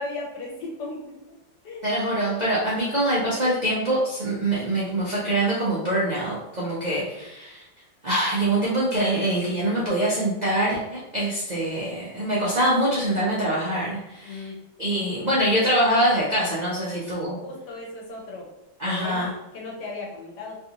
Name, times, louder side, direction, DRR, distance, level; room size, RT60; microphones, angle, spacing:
voice 1, 0.0-1.4 1.6-1.9 14.2-14.6 16.9-17.1 17.4-18.5 18.8-20.6, left 2 dB, 75° left, -2 dB, 1.4 m, -36 dB
voice 2, 1.8-7.6 8.0-14.5 14.8-17.4 18.8-19.3, right 1 dB, 85° right, -7 dB, 0.3 m, -24 dB
3.3 x 2.5 x 2.8 m, 0.93 s
omnidirectional pair, 1.9 m